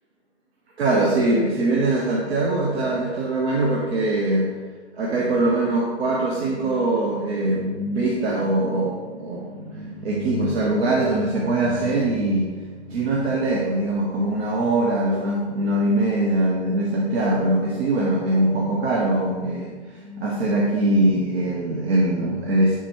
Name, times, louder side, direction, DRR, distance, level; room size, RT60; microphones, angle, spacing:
voice 1, 0.8-4.6 5.0-22.8, right 2 dB, 60° right, -3 dB, 1.1 m, -22 dB
10.0 x 4.3 x 3.1 m, 1.4 s
hypercardioid pair, 160°, 36 cm